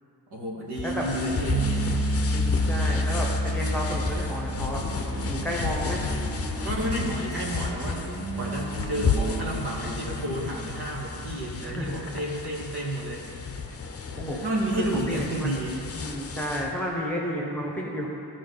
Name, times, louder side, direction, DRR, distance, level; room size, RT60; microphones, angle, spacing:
voice 1, 0.3-2.0 6.6-13.2 14.1-15.8, right 1 dB, 65° right, -4 dB, 2.0 m, -31 dB
sound 1, 0.7-16.7, left 5 dB, 35° left, 0.7 m, -33 dB
sound 2, 1.5-12.4, equal, 35° right, 1.0 m, -31 dB
voice 2, 2.3-4.8 5.3-6.0 11.7-12.1 14.3-14.4 14.8-15.5 15.9-18.1, equal, 5° left, -3 dB, 1.3 m, -31 dB
sound 3, 4.7-10.6, right 2 dB, 10° right, 1.1 m, -37 dB
13.5 x 5.0 x 4.0 m, 2.7 s
cardioid pair, 85°, 42 cm